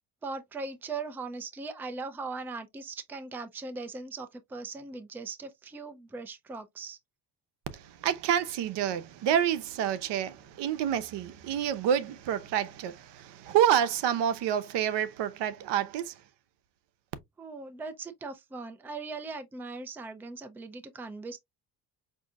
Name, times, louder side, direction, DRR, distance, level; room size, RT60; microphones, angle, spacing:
voice 1, 0.2-7.0 17.4-21.4, right 3 dB, 5° right, 0.3 m, -39 dB
voice 2, 7.7-16.1, right 9 dB, 80° right, 0.8 m, -28 dB
5.3 x 2.7 x 2.3 m
cardioid pair, 155°, 41 cm